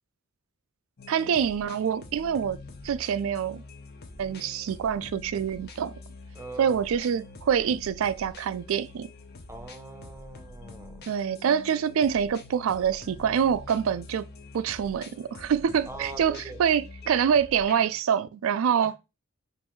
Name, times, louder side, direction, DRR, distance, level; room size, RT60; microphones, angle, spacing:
sound 1, 1.0-18.0, left 3 dB, 50° left, 0.7 m, -46 dB
voice 1, 1.1-2.6 2.8-3.6 4.2-5.9 6.6-9.1 11.1-14.3 14.5-18.9, right 8 dB, 70° right, 0.3 m, -26 dB
voice 2, 6.3-6.8 9.5-11.1 15.9-16.6 18.8-18.9, right 3 dB, 15° right, 0.6 m, -42 dB
5.4 x 2.6 x 3.1 m
head